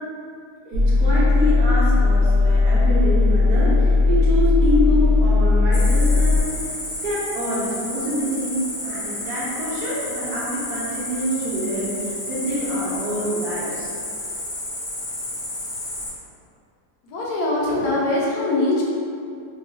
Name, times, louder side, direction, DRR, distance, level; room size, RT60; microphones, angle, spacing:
voice 1, 0.6-6.6 7.0-13.9, equal, 90° right, -8 dB, 1.3 m, -26 dB
sound 1, 0.7-6.4, left 3 dB, 75° right, 1.1 m, -17 dB
Cricket, 5.7-16.1, left 1 dB, 50° left, 0.9 m, -31 dB
voice 2, 17.1-18.8, left 2 dB, 80° left, -4 dB, 1.2 m, -22 dB
2.9 x 2.6 x 2.5 m, 2.5 s
omnidirectional pair, 1.7 m